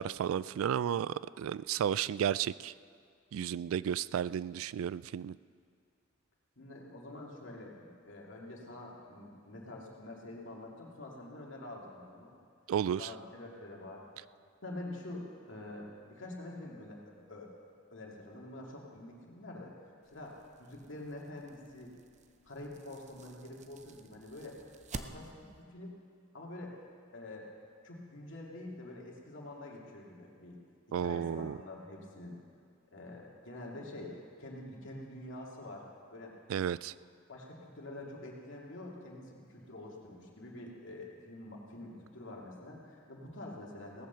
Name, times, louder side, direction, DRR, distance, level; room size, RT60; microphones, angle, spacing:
voice 1, 0.0-2.7 3.3-5.4 12.7-13.1 30.9-31.6 36.5-36.9, right 9 dB, 90° right, 0.3 m, -33 dB
voice 2, 6.6-12.3 13.0-14.1 14.6-17.5 17.9-19.7 20.1-21.9 22.4-25.5 25.7-26.0 26.3-26.8 27.1-27.5 27.8-30.6 31.0-32.3 32.9-36.3 37.3-44.1, left 1 dB, 65° left, 2.4 m, -46 dB
sound 1, 20.0-25.6, right 3 dB, 35° right, 0.6 m, -50 dB
17.5 x 8.6 x 6.8 m
head